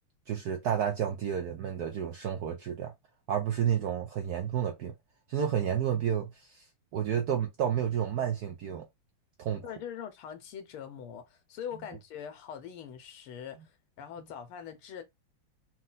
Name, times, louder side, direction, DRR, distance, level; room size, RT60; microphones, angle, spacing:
voice 1, 0.3-2.9 3.3-4.9 5.3-6.6 6.9-8.8 9.4-9.6, right 9 dB, 75° right, 0.9 m, -30 dB
voice 2, 9.6-15.0, left 8 dB, 90° left, 1.8 m, -42 dB
4.3 x 2.3 x 4.0 m
omnidirectional pair, 2.3 m